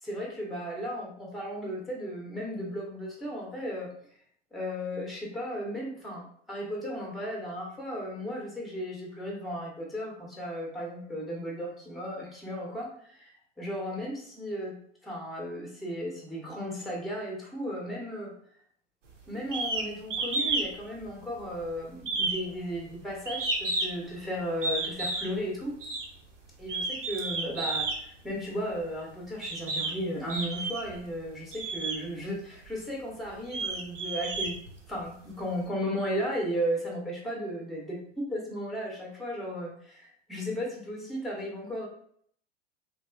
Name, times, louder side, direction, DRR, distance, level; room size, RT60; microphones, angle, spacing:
voice 1, 0.0-3.9 4.5-14.7 15.0-18.3 19.3-25.7 26.6-34.6 34.9-41.9, equal, ahead, -1 dB, 0.4 m, -35 dB
sound 1, 19.5-19.9 20.1-20.7 21.0-21.6 22.0-24.1 24.6-25.3 25.8-26.1 26.6-28.0 28.8-28.9 29.4-29.9 30.3-31.0 31.5-32.0 32.6-32.7 33.2-35.1, right 3 dB, 80° right, 0.7 m, -31 dB
3.1 x 2.3 x 2.2 m, 0.63 s
figure-of-eight pair, 95°, 37 cm